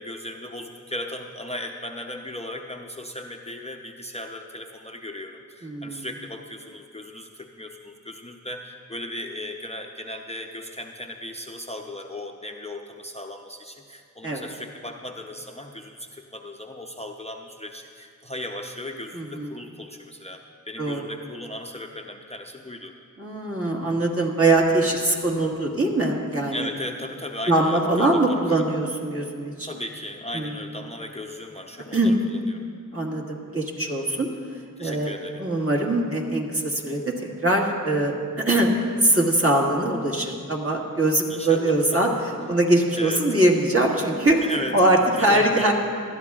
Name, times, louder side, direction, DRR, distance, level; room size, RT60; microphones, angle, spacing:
voice 1, 0.0-22.9 26.5-28.6 29.6-32.6 34.8-35.5 41.3-42.1 42.9-43.3 44.4-45.7, left 1 dB, 20° left, 2 dB, 0.6 m, -36 dB
voice 2, 5.6-6.1 14.2-14.5 19.1-19.5 20.8-21.0 23.2-26.7 27.5-29.7 30.3-30.6 31.9-32.1 32.9-34.3 34.8-35.1 35.4-37.1 37.4-38.8 39.0-44.4 44.7-45.7, right 1 dB, 40° right, -1 dB, 1.7 m, -22 dB
19.5 x 12.5 x 2.4 m, 2.2 s
wide cardioid pair, 55°, 33 cm